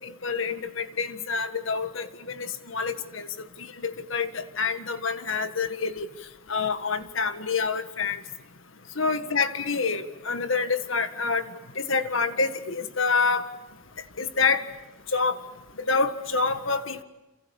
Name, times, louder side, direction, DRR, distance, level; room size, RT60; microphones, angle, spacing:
voice 1, 0.0-6.1 6.5-8.2 9.0-11.5 11.8-13.5 14.2-14.7 15.1-15.4 15.8-17.0, left 4 dB, 70° left, 9 dB, 1.7 m, -27 dB
29.0 x 28.0 x 7.2 m, 0.98 s
head